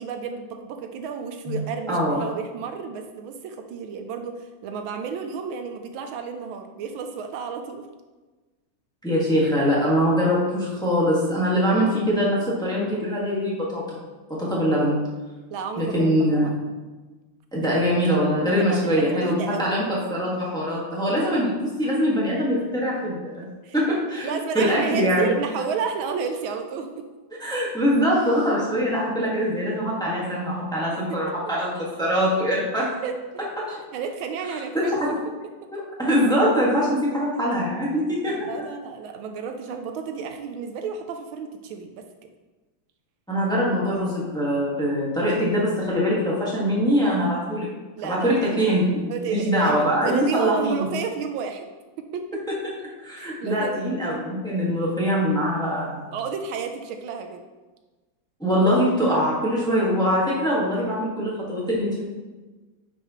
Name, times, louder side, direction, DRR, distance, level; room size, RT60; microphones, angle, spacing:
voice 1, 0.0-7.9 15.5-16.5 17.8-18.2 18.7-19.8 23.6-23.8 24.2-27.1 31.1-31.2 31.8-31.9 33.0-33.2 33.9-35.2 35.6-35.7 38.4-42.3 48.0-48.6 49.1-51.7 52.0-52.4 53.2-53.8 56.1-57.4, right 6 dB, 80° right, 6 dB, 1.4 m, -31 dB
voice 2, 1.9-2.2 9.0-14.0 14.3-15.0 15.8-16.6 17.5-23.5 23.7-25.3 27.4-32.9 33.6-33.8 34.5-35.2 35.7-38.5 43.3-47.7 48.0-50.9 52.5-52.6 52.8-56.1 58.4-62.0, equal, ahead, -6 dB, 1.5 m, -23 dB
9.1 x 5.4 x 3.1 m, 1.2 s
omnidirectional pair, 2.2 m